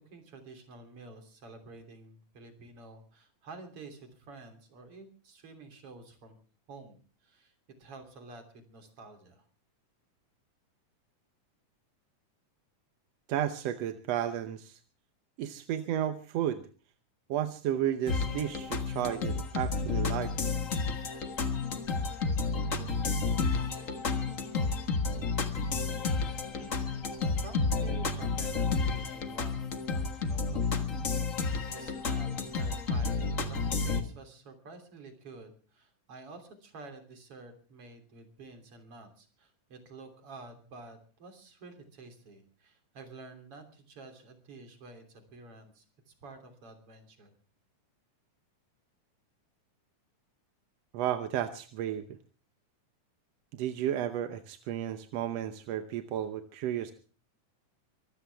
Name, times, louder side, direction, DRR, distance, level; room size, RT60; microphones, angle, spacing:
voice 1, 0.1-6.4 6.7-7.5 7.8-9.4 26.6-47.3, right 3 dB, 45° right, 6 dB, 4.0 m, -50 dB
voice 2, 13.3-14.8 15.4-16.6 17.3-20.3 50.9-52.1 53.5-56.9, right 11 dB, 65° right, 9 dB, 1.8 m, -33 dB
sound 1, 18.1-34.0, left 4 dB, 40° left, 1.3 m, -31 dB
24.0 x 15.5 x 3.5 m, 0.39 s
omnidirectional pair, 3.6 m